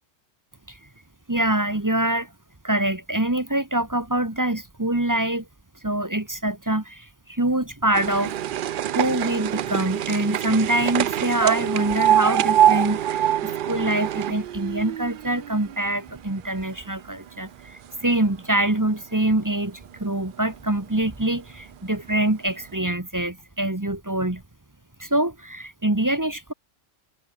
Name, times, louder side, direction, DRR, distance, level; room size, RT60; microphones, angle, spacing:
voice 1, 1.3-2.3 2.6-5.5 5.8-8.3 8.9-24.4 25.0-26.5, right 1 dB, 15° right, 1.3 m, -25 dB
sound 1, 7.9-16.2 16.6-17.4 18.1-18.3 18.5-18.6 18.9-19.0 19.9-20.0 20.6-20.7 21.3-21.4 21.9-22.0, right 11 dB, 60° right, 0.5 m, -24 dB
omnidirectional pair, 1.3 m